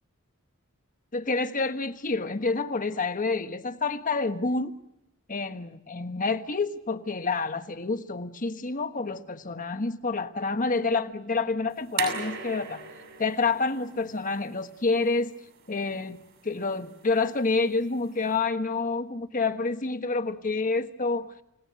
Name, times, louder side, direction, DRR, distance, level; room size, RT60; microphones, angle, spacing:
voice 1, 1.1-4.7 5.3-12.8 13.2-15.3 15.7-21.3, left 3 dB, 40° left, 1.3 m, -28 dB
sound 1, 11.7-18.4, right 6 dB, 65° right, 6.7 m, -39 dB
30.0 x 18.0 x 9.5 m
head